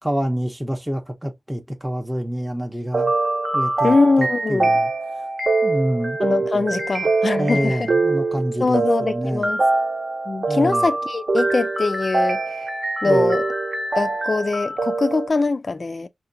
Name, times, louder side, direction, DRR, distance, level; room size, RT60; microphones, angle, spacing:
voice 1, 0.0-3.1 3.5-4.9 5.2-5.3 5.6-6.2 7.4-9.5 10.5-10.9 13.0-13.3, equal, 5° right, 0.6 m, -27 dB
sound 1, 2.9-15.3, right 2 dB, 40° right, 0.8 m, -23 dB
voice 2, 3.8-4.7 6.2-7.8 8.6-9.6 10.3-12.7 13.0-13.5 13.9-16.1, left 3 dB, 40° left, 0.3 m, -22 dB
5.6 x 2.2 x 2.5 m
wide cardioid pair, 100°, 0 cm